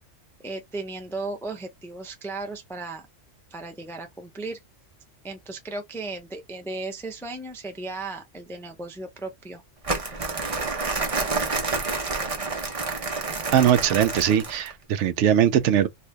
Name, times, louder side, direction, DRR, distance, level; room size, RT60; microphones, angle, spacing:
voice 1, 0.4-3.0 3.5-4.6 5.2-9.6, right 3 dB, 5° left, 0.4 m, -35 dB
Crumpling crinkling, 9.8-14.7, right 3 dB, 30° right, 0.8 m, -28 dB
voice 2, 13.5-15.9, right 9 dB, 75° right, 0.9 m, -20 dB
2.7 x 2.6 x 3.3 m
omnidirectional pair, 1.3 m